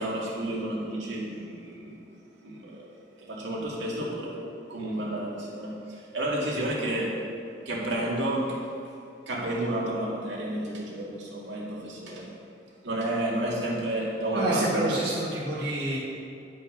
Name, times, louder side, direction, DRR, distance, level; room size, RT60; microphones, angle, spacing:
voice 1, 0.0-2.0 2.4-2.9 3.2-4.4 4.7-7.2 7.7-8.6 9.3-12.3 12.8-15.0, right 1 dB, 80° right, -4 dB, 2.1 m, -31 dB
voice 2, 14.3-16.0, right 2 dB, 65° right, -8 dB, 1.7 m, -27 dB
10.5 x 5.8 x 5.5 m, 2.6 s
head